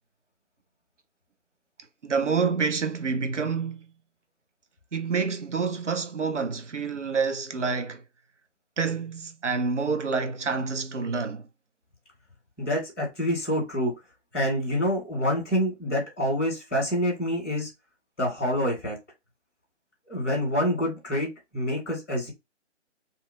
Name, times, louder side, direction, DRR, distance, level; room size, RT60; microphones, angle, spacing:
voice 1, 2.0-3.9 4.9-8.0 8.8-11.5, right 5 dB, 80° right, 0.6 m, -28 dB
voice 2, 12.6-13.9 14.3-17.7 18.2-19.0 20.1-22.3, equal, 5° left, 0.7 m, -27 dB
2.6 x 2.2 x 2.6 m
figure-of-eight pair, 145°, 35 cm